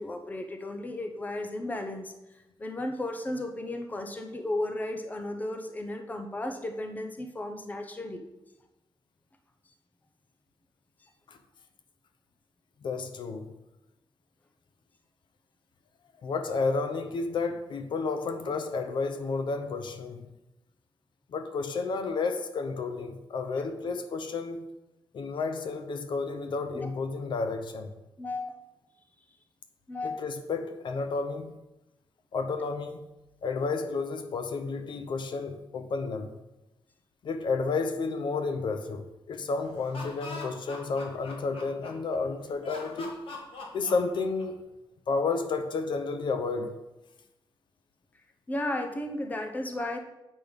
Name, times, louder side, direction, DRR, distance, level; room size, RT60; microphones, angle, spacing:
voice 1, 0.0-8.2 11.0-11.1 26.7-26.9 28.2-28.5 29.9-30.2 48.5-50.0, left 1 dB, 15° left, 0.7 m, -34 dB
voice 2, 12.8-13.5 16.2-20.3 21.3-24.7 25.1-27.9 30.0-31.5 32.3-33.0 33.4-36.3 37.2-43.2 43.7-44.7 45.1-46.8, left 4 dB, 55° left, 0.7 m, -31 dB
Laughter, 39.6-42.1 42.6-44.7, left 2 dB, 75° left, 1.6 m, -42 dB
8.0 x 5.3 x 5.2 m
wide cardioid pair, 180°, 9 cm